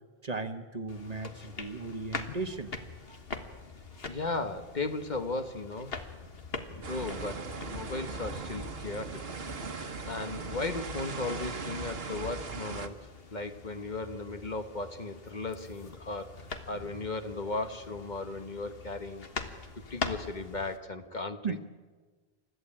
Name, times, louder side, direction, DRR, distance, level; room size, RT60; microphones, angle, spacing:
voice 1, 0.2-2.8 3.1-3.2 21.4-21.6, right 3 dB, 40° right, 8 dB, 1.2 m, -36 dB
sound 1, 0.9-20.8, left 4 dB, 65° left, 1.7 m, -44 dB
voice 2, 4.1-6.0 6.7-9.2 10.0-19.3 19.9-21.6, left 3 dB, 45° left, 8 dB, 1.3 m, -36 dB
sound 2, 6.8-12.9, right 4 dB, 70° right, 1.5 m, -39 dB
29.0 x 14.0 x 8.8 m, 1.4 s
omnidirectional pair, 1.1 m